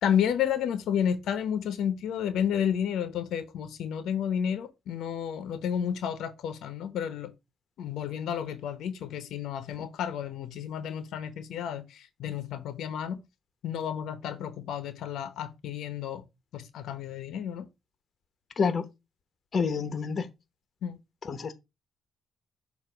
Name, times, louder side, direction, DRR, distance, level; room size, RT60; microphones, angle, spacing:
voice 1, 0.0-7.3 7.8-13.2 13.6-16.2 16.5-17.6 20.8-21.0, left 8 dB, 80° left, 0.9 m, -31 dB
voice 2, 18.6-18.9 19.5-20.3 21.2-21.5, left 5 dB, 45° left, 1.0 m, -28 dB
6.7 x 2.7 x 5.1 m
cardioid pair, 90°, 0 cm